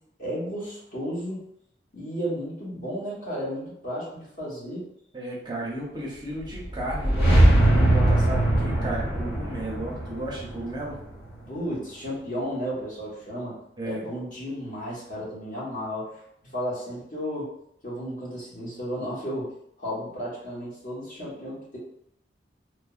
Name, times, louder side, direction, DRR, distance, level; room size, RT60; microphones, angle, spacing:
voice 1, 0.2-1.5 1.9-4.9 11.5-13.6 13.8-17.5 17.8-21.8, equal, 45° left, -7 dB, 1.2 m, -33 dB
voice 2, 5.1-11.0 13.8-14.0, right 1 dB, 25° right, -4 dB, 0.5 m, -34 dB
sound 1, 6.5-11.6, right 1 dB, 70° left, 1.5 m, -22 dB
3.3 x 2.0 x 2.4 m, 0.74 s
head